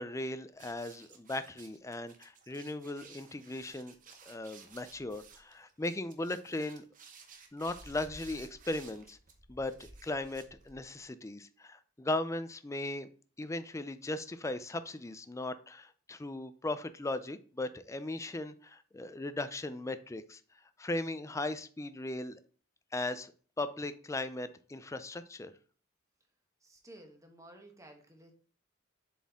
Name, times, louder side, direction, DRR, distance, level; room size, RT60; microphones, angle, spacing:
voice 1, 0.0-3.9 4.3-6.8 7.5-9.2 9.5-13.1 13.4-20.4 20.8-22.4 22.9-23.3 23.6-25.5, left 2 dB, 15° left, 12 dB, 0.4 m, -38 dB
sound 1, 0.5-11.0, right 4 dB, 40° right, 0.9 m, -55 dB
voice 2, 26.6-28.3, right 1 dB, 15° right, 3 dB, 1.2 m, -54 dB
7.3 x 4.3 x 3.6 m, 0.42 s
head